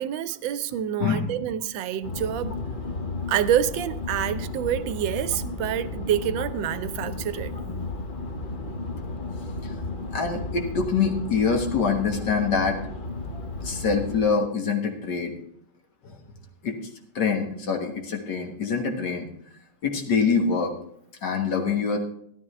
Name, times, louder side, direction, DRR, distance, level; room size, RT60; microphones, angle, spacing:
voice 1, 0.0-2.6 3.3-7.5, right 10 dB, 85° right, 1.3 m, -27 dB
sound 1, 2.0-14.2, left 3 dB, 35° left, 0.9 m, -33 dB
voice 2, 10.1-12.8 13.3-15.3 16.0-16.2 16.6-16.8 17.2-19.3 19.8-20.7 21.2-22.0, left 5 dB, 65° left, 2.0 m, -25 dB
12.5 x 12.0 x 3.2 m
omnidirectional pair, 2.0 m